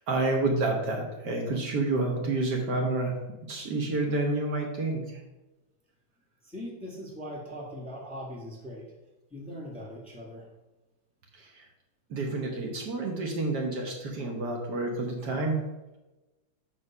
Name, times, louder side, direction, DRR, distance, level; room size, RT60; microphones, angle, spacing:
voice 1, 0.1-3.1 3.5-5.2 11.3-11.7 12.1-15.6, right 2 dB, 60° right, 1 dB, 1.6 m, -29 dB
voice 2, 6.4-8.9 9.3-10.5, equal, 5° left, -3 dB, 1.5 m, -40 dB
6.9 x 4.4 x 6.0 m, 1.0 s
omnidirectional pair, 2.2 m